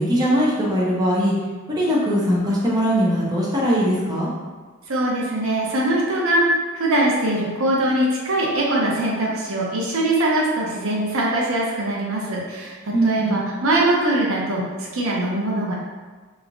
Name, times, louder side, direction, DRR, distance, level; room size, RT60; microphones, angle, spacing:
voice 1, 0.0-1.3 1.7-4.3 12.9-13.4, equal, 20° right, -6 dB, 0.6 m, -20 dB
voice 2, 4.9-15.7, right 1 dB, 70° right, -3 dB, 0.7 m, -22 dB
3.3 x 3.0 x 2.5 m, 1.4 s
head